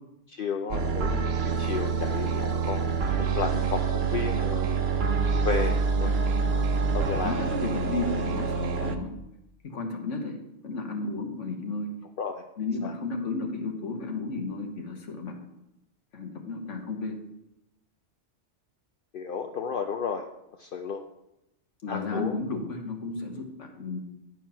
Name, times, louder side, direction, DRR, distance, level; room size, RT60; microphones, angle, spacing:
voice 1, 0.3-1.1 1.4-4.9 5.3-6.2 6.9-7.4 12.2-12.4 12.8-12.9 19.1-20.3 20.6-21.0 21.9-22.4, left 6 dB, 60° left, 3 dB, 0.7 m, -33 dB
sound 1, 0.7-9.0, right 5 dB, 65° right, 0.9 m, -26 dB
voice 2, 7.2-9.1 9.6-11.9 12.6-15.4 16.1-17.1 21.8-24.0, left 3 dB, 85° left, 3 dB, 1.6 m, -33 dB
11.0 x 4.6 x 5.6 m, 0.89 s
omnidirectional pair, 1.2 m